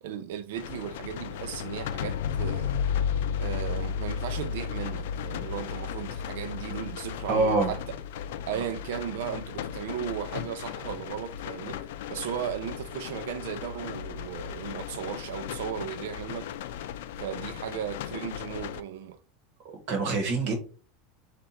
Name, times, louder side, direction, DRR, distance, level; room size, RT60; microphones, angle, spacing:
voice 1, 0.0-2.8 3.4-7.8 8.5-16.5 17.2-19.2, right 9 dB, 70° right, 0.5 m, -36 dB
sound 1, 0.6-18.8, left 8 dB, 70° left, 0.4 m, -34 dB
voice 2, 7.3-7.7 19.7-20.5, right 3 dB, 40° right, 1.3 m, -25 dB
4.5 x 2.5 x 4.1 m
supercardioid pair, 180°, 0 cm